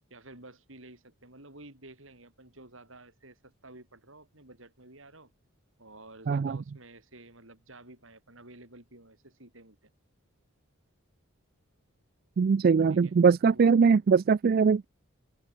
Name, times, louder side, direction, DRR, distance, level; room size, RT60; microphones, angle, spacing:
voice 1, 0.1-5.3 5.8-9.9 12.9-13.1 13.5-13.8, right 2 dB, 65° right, 6.9 m, -51 dB
voice 2, 6.3-6.6 12.4-14.9, right 5 dB, 45° right, 0.3 m, -22 dB
open air
head